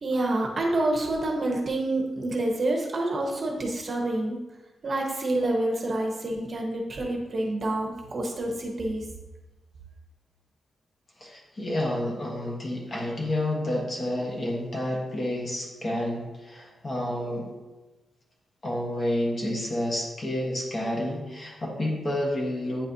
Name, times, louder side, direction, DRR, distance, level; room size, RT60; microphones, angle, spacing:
voice 1, 0.0-4.4 4.8-9.0, right 2 dB, 35° right, 0 dB, 0.9 m, -27 dB
voice 2, 11.2-17.5 18.6-22.9, left 1 dB, 35° left, -1 dB, 1.2 m, -29 dB
8.7 x 4.1 x 2.7 m, 1.1 s
wide cardioid pair, 155°, 0 cm